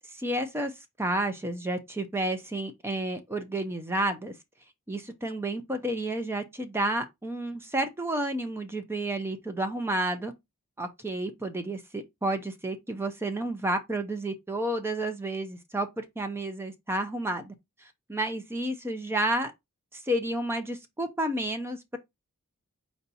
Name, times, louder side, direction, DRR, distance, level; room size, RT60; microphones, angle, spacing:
voice 1, 0.1-0.7 1.0-4.3 4.9-10.3 10.8-17.5 18.1-19.5 19.9-22.0, right 1 dB, 10° right, 0.5 m, -31 dB
4.5 x 2.7 x 4.0 m
head